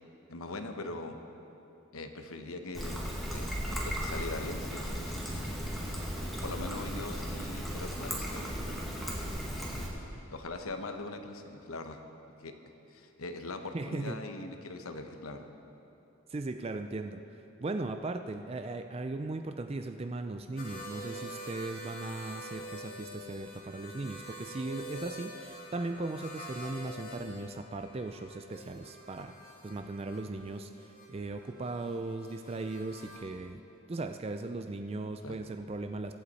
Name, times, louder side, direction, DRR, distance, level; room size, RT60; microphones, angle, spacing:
voice 1, 0.3-1.2 1.9-5.6 6.4-8.9 9.5-9.9 10.3-12.0 12.4-12.5 12.9-15.5 35.2-35.4, left 2 dB, 90° left, 6 dB, 1.0 m, -41 dB
Trickle dribble, 2.7-9.9, equal, ahead, 1.6 m, -36 dB
voice 2, 13.7-14.2 16.3-29.3 29.6-33.6 33.9-36.1, right 2 dB, 30° right, 7 dB, 0.4 m, -38 dB
sound 1, 20.6-33.2, equal, 45° left, 2.2 m, -46 dB
22.5 x 8.3 x 4.2 m, 2.8 s
head